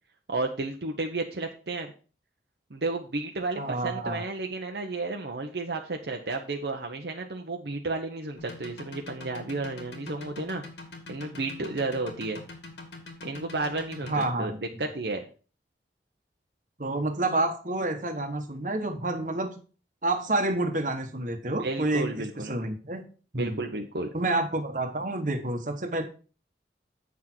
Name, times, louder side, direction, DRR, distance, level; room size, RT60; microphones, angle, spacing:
voice 1, 0.3-1.9 2.7-10.6 11.1-12.4 13.2-14.5 14.8-15.2 21.5-22.5 23.3-24.1, right 3 dB, 70° right, 3 dB, 0.9 m, -32 dB
voice 2, 3.6-4.3 14.0-14.5 16.8-19.6 20.0-23.0 23.3-23.6 24.1-26.0, right 2 dB, 45° right, 5 dB, 1.3 m, -29 dB
sound 1, 8.4-14.3, left 3 dB, 80° left, 2.3 m, -43 dB
8.3 x 6.2 x 4.4 m, 0.37 s
head